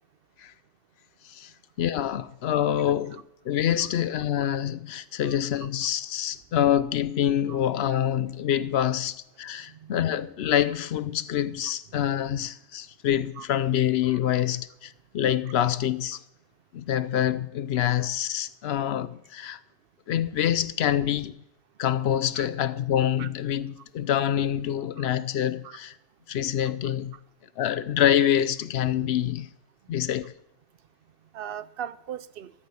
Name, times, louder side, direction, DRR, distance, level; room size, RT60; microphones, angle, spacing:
voice 1, 1.8-16.2 16.7-19.6 20.1-21.3 21.8-26.0 26.3-27.1 27.6-29.5 29.9-30.3, left 10 dB, 80° left, 0.9 m, -26 dB
voice 2, 14.0-14.4 22.3-22.5 23.2-23.3 25.0-25.1 25.6-25.8 26.8-26.9 31.3-32.5, right 9 dB, 65° right, 0.7 m, -40 dB
13.5 x 7.3 x 6.9 m
omnidirectional pair, 1.1 m